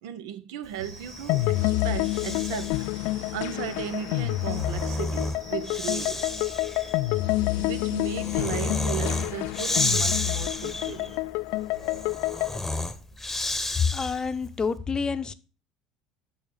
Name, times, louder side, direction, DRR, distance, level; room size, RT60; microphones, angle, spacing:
voice 1, 0.0-2.8 3.3-6.3 7.6-11.2, right 9 dB, 65° right, 0.9 m, -36 dB
sound 1, 0.8-8.1, right 2 dB, 80° right, 2.0 m, -48 dB
Breathing, 0.9-2.9 4.2-14.4, left 2 dB, 5° left, 1.1 m, -32 dB
sound 2, 1.3-12.6, left 19 dB, 55° left, 0.4 m, -28 dB
voice 2, 13.7-15.3, left 5 dB, 25° left, 0.8 m, -27 dB
9.4 x 6.4 x 6.6 m
figure-of-eight pair, 70°, 3 cm